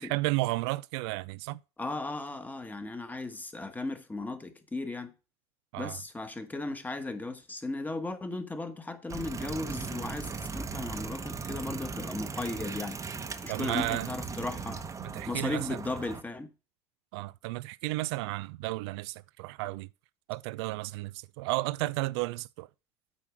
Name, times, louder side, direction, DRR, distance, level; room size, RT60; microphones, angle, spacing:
voice 1, 0.0-1.6 5.7-6.0 13.5-14.1 15.0-15.8 17.1-19.9 20.3-22.7, right 20 dB, 70° right, 0.4 m, -33 dB
voice 2, 1.8-5.1 5.8-13.0 13.4-14.9 15.3-16.5, left 2 dB, 10° left, 1.3 m, -36 dB
sound 1, 9.1-16.2, right 5 dB, 20° right, 1.0 m, -38 dB
8.5 x 4.4 x 6.1 m
hypercardioid pair, 90°, 14 cm